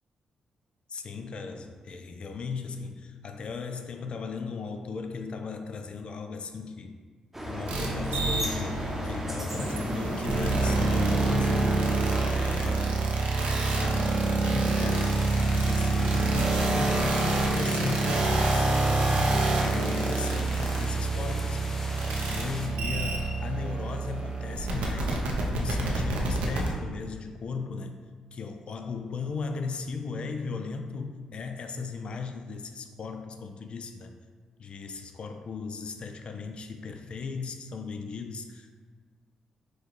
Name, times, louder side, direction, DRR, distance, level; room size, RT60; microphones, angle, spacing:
voice 1, 0.9-7.0 7.4-11.7 12.2-13.0 13.7-21.6 22.3-25.2 25.5-28.0 28.3-34.2 34.6-38.7, left 5 dB, 55° left, 6 dB, 0.4 m, -37 dB
sound 1, 7.3-12.8, equal, 10° right, 0.8 m, -35 dB
sound 2, 7.7-26.7, right 3 dB, 85° right, 0.7 m, -27 dB
sound 3, 14.9-22.7, left 1 dB, 25° left, 0.7 m, -41 dB
5.1 x 2.4 x 3.7 m, 1.5 s
cardioid pair, 65°, 2 cm